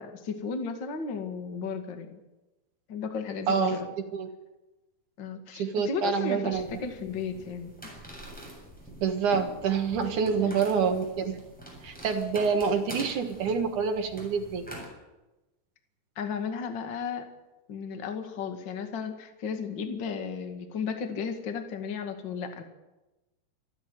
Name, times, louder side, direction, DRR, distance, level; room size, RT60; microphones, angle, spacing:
voice 1, 0.0-2.2 2.9-3.9 5.2-7.7 10.4-10.6 16.2-17.3 17.7-22.6, left 5 dB, 35° left, 5 dB, 2.0 m, -34 dB
voice 2, 3.5-4.3 5.5-6.7 9.0-11.4 11.8-14.6, right 6 dB, 60° right, 6 dB, 2.5 m, -27 dB
sound 1, 6.5-14.9, right 1 dB, ahead, 7.1 m, -45 dB
27.0 x 11.0 x 9.3 m, 1.0 s
omnidirectional pair, 4.7 m